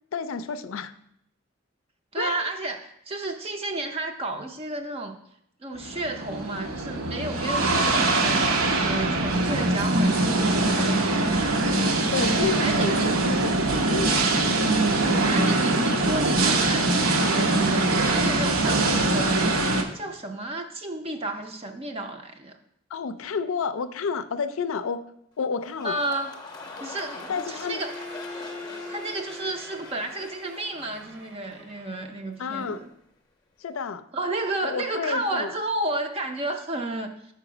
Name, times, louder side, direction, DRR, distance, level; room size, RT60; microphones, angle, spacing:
voice 1, 0.1-0.9 2.2-2.5 12.1-14.2 14.6-14.8 22.9-25.0 25.4-26.0 27.3-27.8 32.4-32.8 33.6-34.0 34.6-35.5, left 5 dB, 75° left, 12 dB, 0.4 m, -30 dB
voice 2, 2.1-5.2 5.6-12.1 12.6-13.1 14.8-22.6 25.8-26.3 26.8-28.0 28.9-32.9 34.1-37.3, right 2 dB, 25° right, 5 dB, 0.5 m, -32 dB
sound 1, 5.8-19.8, right 2 dB, 80° right, 0.8 m, -23 dB
sound 2, 25.6-31.9 32.2-32.7, left 3 dB, 20° left, 0.7 m, -42 dB
Bowed string instrument, 27.5-32.4, left 1 dB, 50° right, 0.8 m, -43 dB
4.9 x 4.6 x 6.0 m, 0.75 s
head